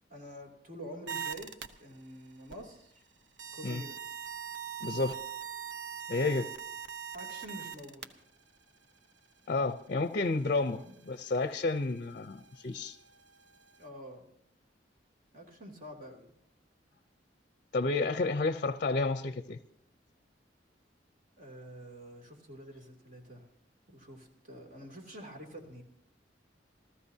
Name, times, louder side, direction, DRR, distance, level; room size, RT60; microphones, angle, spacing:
voice 1, 0.1-2.9 3.5-4.1 7.1-8.1 10.7-11.0 13.8-14.3 15.3-16.3 21.4-23.5 23.9-25.8, equal, 50° right, 2 dB, 2.8 m, -47 dB
sound 1, 1.1-1.7 2.4-2.7 3.4-8.0 9.7-9.8 10.0-10.1 10.4-13.8, right 8 dB, 85° right, 0.9 m, -42 dB
voice 2, 4.8-5.2 6.1-6.5 9.5-13.0 17.7-19.6, left 3 dB, 50° left, 11 dB, 0.6 m, -31 dB
28.0 x 14.0 x 2.8 m, 0.69 s
head